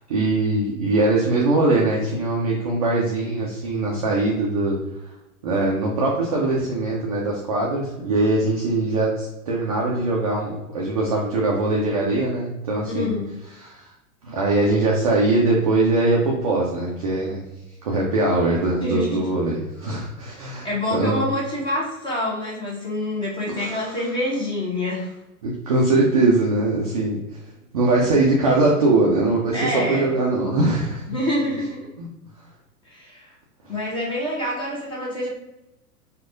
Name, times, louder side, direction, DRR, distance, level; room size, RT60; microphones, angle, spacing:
voice 1, 0.0-4.8 5.4-13.1 13.6-13.9 14.2-17.4 17.8-21.2 23.5-24.1 25.4-27.2 27.7-31.0 32.0-32.1, right 2 dB, 30° right, -3 dB, 0.4 m, -21 dB
voice 2, 12.9-13.3 18.8-19.3 20.4-25.2 29.5-30.1 31.1-31.9 32.8-33.3 33.7-35.3, left 1 dB, 10° left, -4 dB, 0.7 m, -27 dB
4.5 x 2.4 x 2.5 m, 0.93 s
figure-of-eight pair, 100°, 46 cm